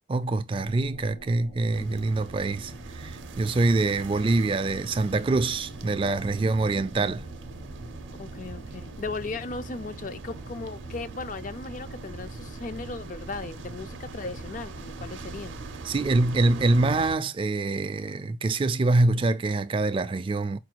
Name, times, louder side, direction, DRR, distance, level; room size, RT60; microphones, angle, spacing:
voice 1, 0.1-7.3 15.8-20.6, right 2 dB, 30° right, 0.3 m, -25 dB
sound 1, 0.6-16.4, right 2 dB, 65° left, 1.5 m, -47 dB
sound 2, 1.7-17.2, right 3 dB, 80° right, 0.5 m, -41 dB
sound 3, 2.5-14.7, equal, 85° left, 2.0 m, -58 dB
voice 2, 8.2-15.6, left 3 dB, 45° left, 0.4 m, -37 dB
5.0 x 2.3 x 4.4 m
head